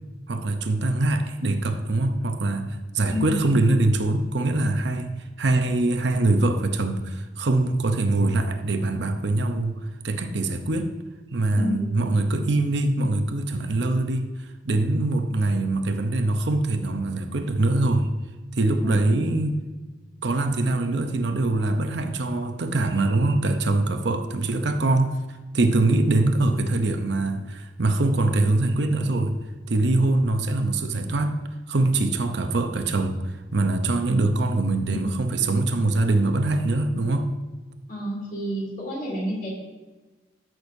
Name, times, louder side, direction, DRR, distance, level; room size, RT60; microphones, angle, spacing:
voice 1, 0.3-9.8 10.0-10.9 11.3-18.1 18.5-19.6 20.2-25.1 25.5-29.4 29.7-31.4 31.7-37.3, right 2 dB, 65° right, 6 dB, 0.7 m, -23 dB
voice 2, 3.1-3.6 11.5-12.0 18.8-19.3 34.9-35.0 37.9-39.5, equal, 45° left, -3 dB, 2.6 m, -30 dB
13.0 x 6.3 x 2.7 m, 1.2 s
head